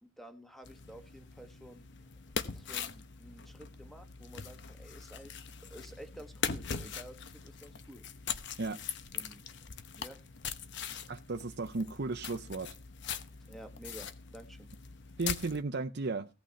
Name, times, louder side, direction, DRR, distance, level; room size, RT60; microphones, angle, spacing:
voice 1, 0.0-1.9 2.5-8.0 9.1-9.4 9.9-10.2 13.5-14.7, right 1 dB, ahead, 1.2 m, -51 dB
sound 1, 0.6-15.6, left 7 dB, 60° left, 0.9 m, -41 dB
voice 2, 11.1-12.7 15.2-16.3, right 3 dB, 55° right, 0.7 m, -35 dB
15.5 x 6.4 x 5.6 m
head